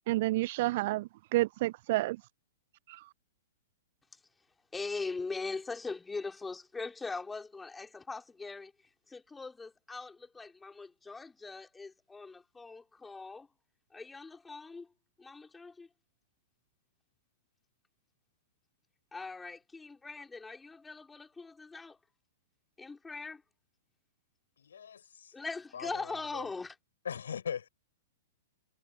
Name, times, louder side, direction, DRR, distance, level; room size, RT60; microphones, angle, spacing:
voice 1, 0.1-2.2 2.9-3.0, right 18 dB, 45° right, 0.8 m, -30 dB
voice 2, 4.7-8.7 9.1-13.5 13.9-14.9 15.2-15.9 19.1-22.0 22.8-23.4 25.3-26.8, left 4 dB, 10° left, 4.7 m, -41 dB
voice 3, 24.6-25.3 25.7-26.5 27.0-27.7, left 7 dB, 65° left, 7.5 m, -40 dB
figure-of-eight pair, 105°, 0 cm